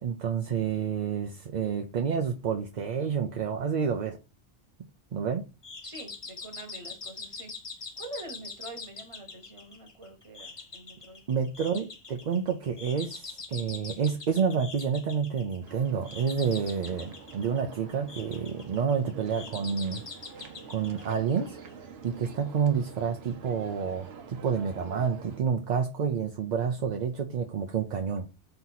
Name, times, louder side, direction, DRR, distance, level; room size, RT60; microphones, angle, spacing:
voice 1, 0.0-4.2 5.1-5.5 11.3-20.0 20.7-21.6 22.0-28.3, right 6 dB, 55° right, 0.5 m, -29 dB
sound 1, 5.6-21.7, left 4 dB, 35° left, 0.7 m, -44 dB
voice 2, 5.8-7.5 7.8-11.2, right 2 dB, 30° right, 1.1 m, -45 dB
sound 2, 15.6-25.4, right 5 dB, 70° right, 1.0 m, -47 dB
4.5 x 2.8 x 3.9 m
omnidirectional pair, 1.1 m